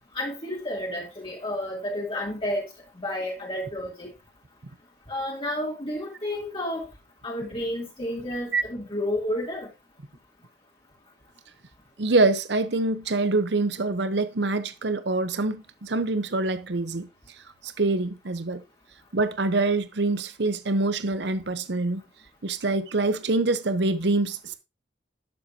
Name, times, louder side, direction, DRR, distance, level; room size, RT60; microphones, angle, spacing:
voice 1, 0.1-2.6 3.0-4.1 5.1-6.8 7.2-9.7, left 1 dB, 30° left, 2.5 m, -31 dB
voice 2, 12.0-17.1 17.6-18.6 19.1-22.0 22.4-24.5, right 2 dB, 65° right, 0.8 m, -25 dB
11.5 x 7.4 x 2.8 m
head